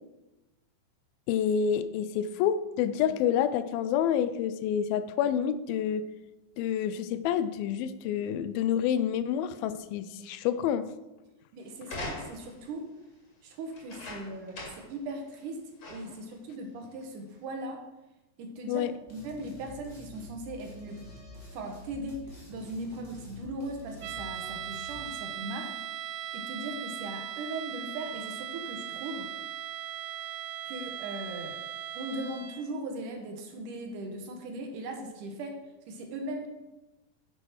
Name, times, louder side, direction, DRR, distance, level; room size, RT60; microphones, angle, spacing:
voice 1, 1.3-6.0 6.6-10.9 18.7-18.9, left 9 dB, 85° left, 13 dB, 2.4 m, -28 dB
voice 2, 11.5-12.9 13.4-15.6 15.9-17.8 18.4-21.0 21.5-22.2 22.5-25.7 26.3-29.3 30.7-31.6 32.0-35.6 35.9-36.5, right 1 dB, 65° right, 4 dB, 2.5 m, -38 dB
sound 1, 11.8-12.6 13.7-15.0 15.3-15.4 15.8-16.2 17.0-17.1, left 2 dB, 50° left, 3.2 m, -41 dB
sound 2, 19.1-25.0, left 1 dB, 15° left, 2.5 m, -48 dB
sound 3, 24.0-32.7, right 10 dB, 85° right, 2.4 m, -39 dB
10.5 x 6.6 x 5.7 m, 1.0 s
omnidirectional pair, 4.2 m